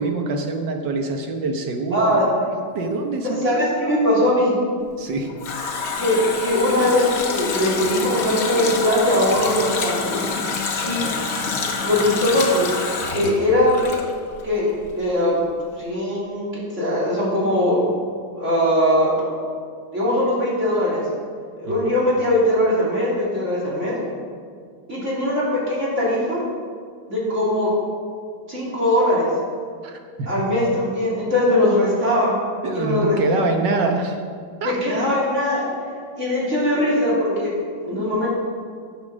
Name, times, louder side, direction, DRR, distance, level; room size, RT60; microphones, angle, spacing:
voice 1, 0.0-2.2 2.7-4.0 5.0-5.3 21.6-21.8 29.8-30.3 32.6-34.2 34.6-34.7, right 3 dB, 65° right, 4 dB, 1.6 m, -25 dB
voice 2, 1.9-2.5 3.4-4.6 6.0-10.2 10.8-11.1 11.8-12.7 13.1-13.9 14.4-15.4 15.8-17.8 18.3-19.2 19.9-21.0 21.6-24.0 24.9-26.4 27.1-27.7 28.5-29.3 30.3-32.4 32.7-33.5 34.6-35.7 36.2-37.5 37.8-38.3, left 1 dB, 35° right, -6 dB, 3.4 m, -20 dB
Water tap faucet, 4.9-14.6 14.8-14.9, left 4 dB, 50° left, 1.3 m, -27 dB
10.5 x 7.5 x 6.4 m, 2.1 s
omnidirectional pair, 2.1 m